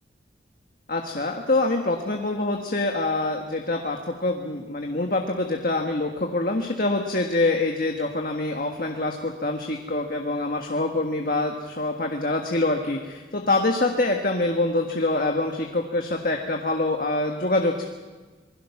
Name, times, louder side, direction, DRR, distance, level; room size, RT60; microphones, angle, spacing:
voice 1, 0.9-17.9, left 2 dB, 50° left, 2 dB, 1.5 m, -25 dB
27.0 x 21.5 x 6.0 m, 1.3 s
head